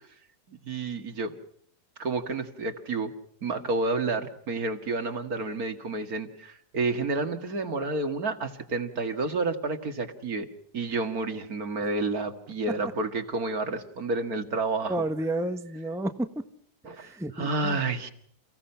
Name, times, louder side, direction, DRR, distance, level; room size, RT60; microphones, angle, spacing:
voice 1, 0.5-1.4 2.0-3.1 3.4-10.5 10.7-15.0 16.8-18.1, right 3 dB, 60° right, 7 dB, 2.4 m, -30 dB
voice 2, 14.9-16.3 17.0-17.8, right 1 dB, ahead, 8 dB, 1.0 m, -31 dB
29.5 x 17.0 x 5.7 m, 0.63 s
omnidirectional pair, 1.7 m